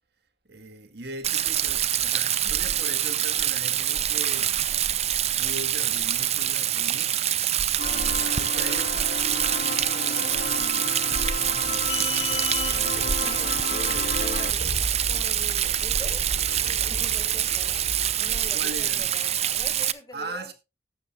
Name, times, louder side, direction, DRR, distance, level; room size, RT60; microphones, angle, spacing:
voice 1, 0.5-4.6 5.4-7.1 7.5-12.0 12.6-13.3 18.5-19.1 20.1-20.5, right 2 dB, 65° right, 1.9 m, -40 dB
Rain, 1.2-19.9, right 10 dB, 40° right, 0.6 m, -25 dB
sound 1, 7.8-14.5, left 6 dB, 50° left, 0.5 m, -33 dB
sound 2, 11.6-18.5, left 2 dB, 75° left, 6.0 m, -36 dB
voice 2, 12.9-16.3 16.6-17.8 18.2-20.5, left 1 dB, 20° left, 1.6 m, -43 dB
14.5 x 12.0 x 2.2 m
head